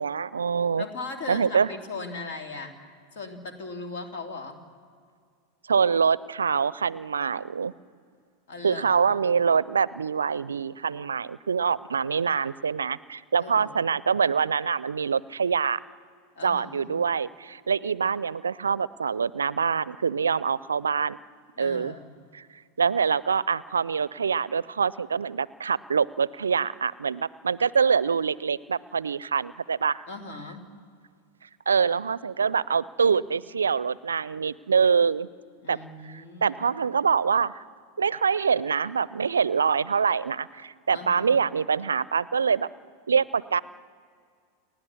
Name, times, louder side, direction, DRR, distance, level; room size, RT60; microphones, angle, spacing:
voice 1, 0.0-0.8 1.3-1.7 5.7-7.7 8.6-15.8 16.4-21.2 21.6-21.9 22.3-22.4 22.8-30.0 31.7-35.3 35.7-35.8 36.1-37.6 38.0-42.7 43.1-43.6, right 6 dB, 80° right, 21 dB, 0.4 m, -25 dB
voice 2, 0.8-2.8 3.1-4.6 8.5-8.9 9.1-9.2 13.4-13.8 16.3-16.9 21.6-22.1 30.1-30.7 35.6-36.6 40.9-41.4, left 3 dB, 60° left, 4 dB, 2.7 m, -38 dB
30.0 x 12.5 x 7.1 m, 2.1 s
figure-of-eight pair, 85°, 0 cm